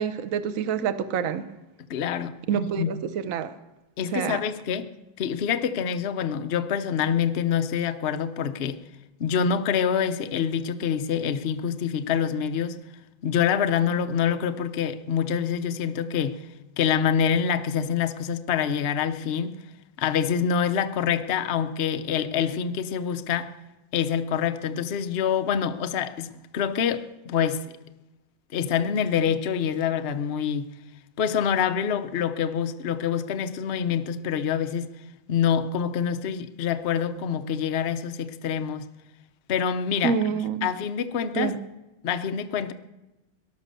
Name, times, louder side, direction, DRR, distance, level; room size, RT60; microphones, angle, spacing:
voice 1, 0.0-1.4 2.5-3.5 4.1-4.4 40.0-40.7 41.3-41.6, right 7 dB, 55° right, 13 dB, 1.0 m, -27 dB
voice 2, 1.9-2.9 4.0-4.9 5.2-8.8 9.2-12.8 13.2-16.5 16.8-19.6 20.0-23.5 23.9-27.6 28.5-30.7 31.2-34.9 35.3-38.8 39.5-41.6 42.0-42.7, left 8 dB, 60° left, 9 dB, 0.6 m, -26 dB
18.5 x 11.5 x 6.7 m, 1.0 s
omnidirectional pair, 2.2 m